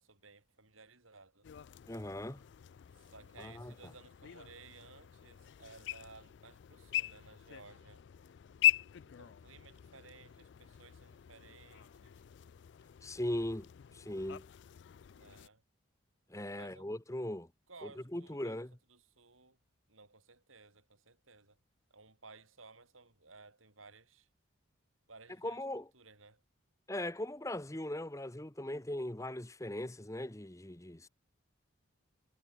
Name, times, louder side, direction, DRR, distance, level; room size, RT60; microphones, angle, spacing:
voice 1, 0.0-1.5 2.9-8.1 9.0-12.2 15.2-15.6 16.5-16.9 17.7-18.6 18.9-19.6 19.9-21.6 21.9-24.3 25.1-25.6 25.9-26.4, right 4 dB, 85° right, 7.3 m, -57 dB
sound 1, 1.4-15.5, left 14 dB, 60° left, 0.3 m, -40 dB
voice 2, 1.9-2.4 3.4-3.7 13.0-13.7 13.9-14.5 16.3-17.5 17.8-18.7 25.4-25.9 26.9-31.1, left 1 dB, 15° left, 1.1 m, -39 dB
head